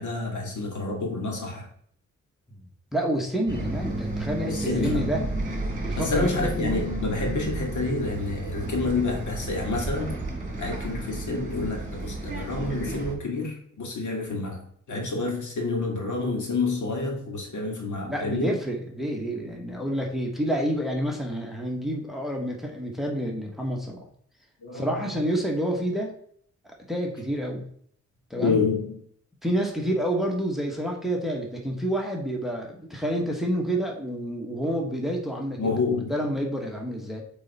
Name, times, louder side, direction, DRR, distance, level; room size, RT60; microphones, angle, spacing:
voice 1, 0.0-1.7 3.5-3.8 4.4-5.1 6.0-10.2 10.6-18.5 24.6-25.2 28.4-29.0 35.6-36.1, left 3 dB, 80° left, 1 dB, 1.9 m, -28 dB
voice 2, 2.9-5.2 5.8-6.9 18.0-24.1 24.7-26.1 26.9-27.7 28.3-28.6 29.4-35.7 36.1-37.2, equal, ahead, 0 dB, 1.2 m, -29 dB
Bus, 3.5-13.1, right 2 dB, 25° right, 1.7 m, -32 dB
8.1 x 3.4 x 4.1 m, 0.63 s
wide cardioid pair, 135°, 29 cm